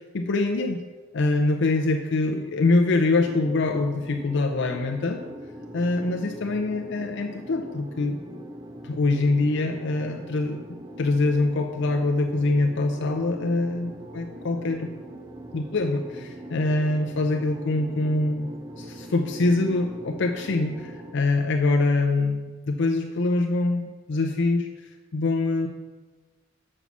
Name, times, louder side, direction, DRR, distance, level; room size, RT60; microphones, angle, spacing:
voice 1, 0.1-0.8 1.1-5.2 5.7-8.2 8.8-10.6 11.0-14.9 15.5-22.4 22.7-25.7, left 2 dB, 60° left, 4 dB, 0.5 m, -24 dB
sound 1, 3.2-21.1, right 1 dB, 15° right, 0.4 m, -41 dB
7.1 x 5.5 x 6.0 m, 1.3 s
head